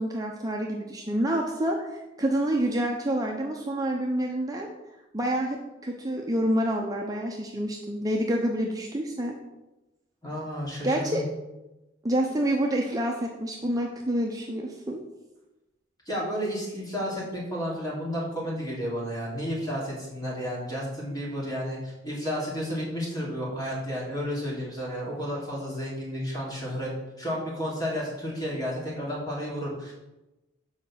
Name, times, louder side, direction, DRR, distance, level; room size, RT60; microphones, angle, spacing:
voice 1, 0.0-4.7 5.1-5.6 5.8-9.4 10.8-11.2 12.0-15.0, right 1 dB, 20° right, 0 dB, 0.7 m, -27 dB
voice 2, 10.2-11.2 16.0-29.9, equal, 20° left, -5 dB, 3.4 m, -32 dB
7.1 x 5.1 x 7.2 m, 1.0 s
head